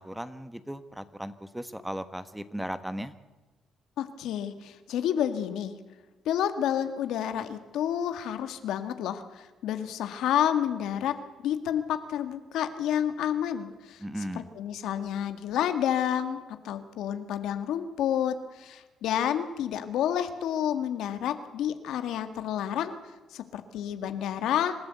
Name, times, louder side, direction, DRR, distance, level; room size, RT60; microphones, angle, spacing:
voice 1, 0.0-3.1 14.0-14.5, equal, 5° right, 12 dB, 1.4 m, -36 dB
voice 2, 4.0-5.7 6.3-11.1 11.4-14.0 14.6-16.4 16.6-23.0 23.3-24.7, left 10 dB, 85° left, 9 dB, 1.8 m, -29 dB
26.0 x 13.5 x 8.2 m, 1.2 s
cardioid pair, 90°, 0 cm